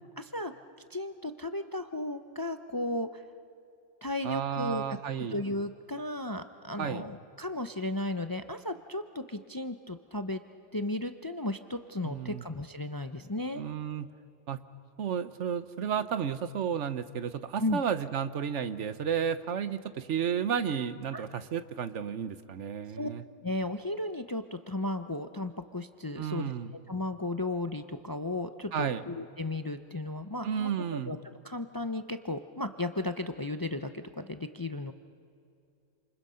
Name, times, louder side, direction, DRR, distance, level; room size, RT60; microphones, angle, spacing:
voice 1, 0.2-0.5 0.9-3.2 4.0-5.0 5.3-10.4 10.7-13.6 17.6-17.8 21.1-21.2 22.9-23.1 23.4-26.5 26.9-31.2 31.4-34.9, left 2 dB, 25° left, 9 dB, 0.5 m, -35 dB
voice 2, 4.2-5.4 6.8-7.0 12.0-12.4 13.5-14.1 14.5-14.6 15.0-23.2 26.2-26.7 28.7-29.0 30.4-31.1, right 7 dB, 70° right, 12 dB, 1.2 m, -32 dB
28.5 x 27.5 x 5.7 m, 2.5 s
omnidirectional pair, 1.3 m